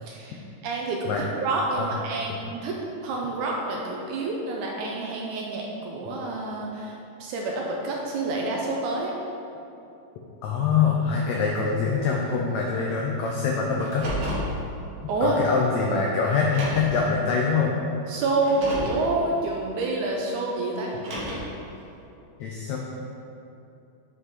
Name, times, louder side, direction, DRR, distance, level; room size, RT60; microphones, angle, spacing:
voice 1, 0.0-9.1 15.1-15.4 18.1-20.9, right 2 dB, 80° right, -1 dB, 1.9 m, -28 dB
voice 2, 10.4-14.1 15.2-17.7 22.4-22.8, left 5 dB, 85° left, -2 dB, 1.6 m, -24 dB
Car, 13.8-14.5 15.6-15.7 16.4-17.0 18.3-19.0 20.8-21.6, equal, 60° right, 2.6 m, -32 dB
7.7 x 5.0 x 4.1 m, 2.7 s
omnidirectional pair, 3.9 m